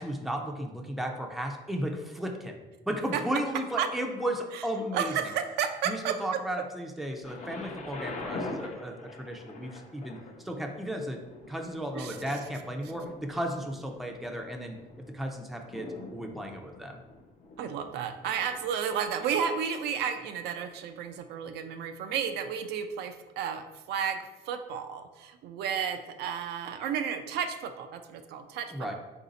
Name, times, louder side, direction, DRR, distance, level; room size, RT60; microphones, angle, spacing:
voice 1, 0.0-2.6 2.9-5.3 5.9-11.2 11.5-14.8 15.1-17.0 28.7-28.9, equal, ahead, 2 dB, 0.5 m, -34 dB
voice 2, 4.9-6.4 11.9-12.2 17.6-28.9, right 7 dB, 75° right, 7 dB, 0.4 m, -32 dB
Thunder, 7.2-19.1 19.8-19.9, left 2 dB, 45° left, 0.6 m, -44 dB
4.1 x 2.6 x 3.9 m, 1.1 s
cardioid pair, 110°, 17 cm